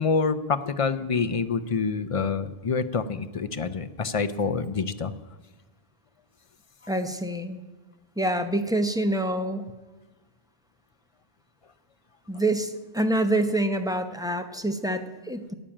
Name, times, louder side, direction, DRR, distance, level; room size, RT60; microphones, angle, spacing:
voice 1, 0.0-5.1, left 5 dB, 40° left, 11 dB, 0.6 m, -27 dB
voice 2, 6.9-7.6 8.2-9.7 12.3-15.5, right 1 dB, 5° right, 6 dB, 0.8 m, -26 dB
12.5 x 8.7 x 8.7 m, 1.2 s
omnidirectional pair, 1.0 m